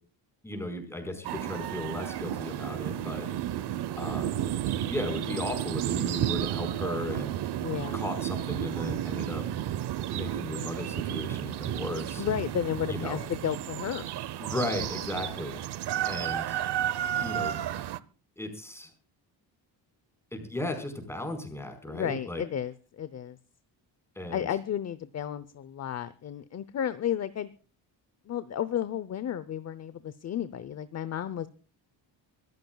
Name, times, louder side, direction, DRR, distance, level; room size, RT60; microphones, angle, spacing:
voice 1, 0.4-3.3 3.9-4.4 4.9-7.4 7.9-9.5 10.1-12.2 12.9-13.2 14.4-15.6 16.0-16.6 17.2-17.6 18.4-18.9 20.3-22.4 24.2-24.5, left 1 dB, 5° left, 5 dB, 4.7 m, -35 dB
sound 1, 1.2-18.0, right 11 dB, 65° right, 1.0 m, -32 dB
voice 2, 7.6-8.0 12.2-14.1 21.9-23.4 24.3-27.5 28.3-31.5, left 9 dB, 35° left, 15 dB, 0.8 m, -33 dB
24.0 x 15.0 x 2.3 m, 0.38 s
cardioid pair, 165°, 43 cm